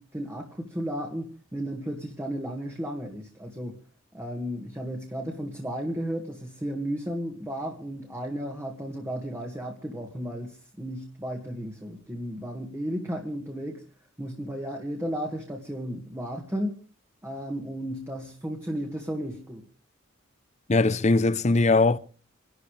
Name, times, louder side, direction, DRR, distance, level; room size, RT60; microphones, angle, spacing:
voice 1, 0.0-3.8 4.1-13.8 14.2-16.8 17.2-19.6, equal, 15° right, 1.8 m, -34 dB
voice 2, 20.7-22.0, left 3 dB, 35° left, 0.6 m, -20 dB
28.5 x 12.0 x 3.3 m
head